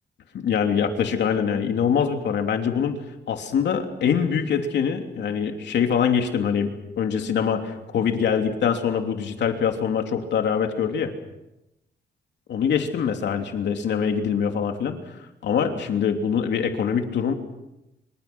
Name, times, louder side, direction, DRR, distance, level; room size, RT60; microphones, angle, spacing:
voice 1, 0.3-3.0 3.3-11.1 12.5-15.0 15.4-17.3, left 7 dB, 80° left, 4 dB, 3.1 m, -24 dB
26.0 x 25.0 x 6.2 m, 0.91 s
cardioid pair, 125°, 18 cm